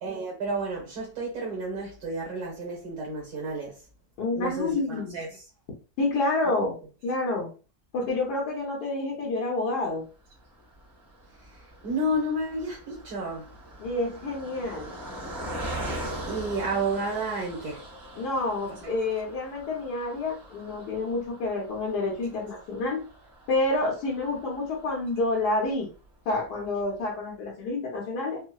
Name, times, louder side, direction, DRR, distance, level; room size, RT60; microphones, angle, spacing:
voice 1, 0.0-3.8 4.3-5.3 11.4-13.5 16.3-17.8 18.8-18.9, right 2 dB, 75° right, 1.5 m, -31 dB
voice 2, 4.2-5.1 6.0-6.7 7.0-7.5 7.9-10.0 13.8-14.9 18.2-23.0 23.5-25.9 26.2-28.4, left 2 dB, 85° left, 1.4 m, -28 dB
Car passing by, 10.3-25.8 26.3-26.4 26.6-26.8, right 1 dB, 25° right, 1.4 m, -41 dB
4.3 x 2.0 x 2.3 m
omnidirectional pair, 1.7 m